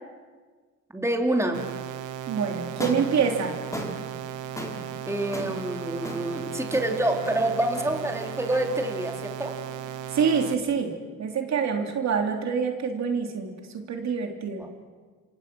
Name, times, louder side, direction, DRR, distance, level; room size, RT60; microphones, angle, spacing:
voice 1, 0.9-1.6 5.1-9.5 14.6-14.7, right 1 dB, 10° right, 2 dB, 3.4 m, -27 dB
sound 1, 1.5-10.5, right 10 dB, 90° right, 1.5 m, -36 dB
voice 2, 2.3-3.5 10.1-10.9 11.2-14.6, right 6 dB, 65° right, 3 dB, 3.3 m, -26 dB
sound 2, 2.7-10.9, left 1 dB, 10° left, 4.1 m, -40 dB
28.5 x 26.0 x 6.2 m, 1.5 s
cardioid pair, 90°, 30 cm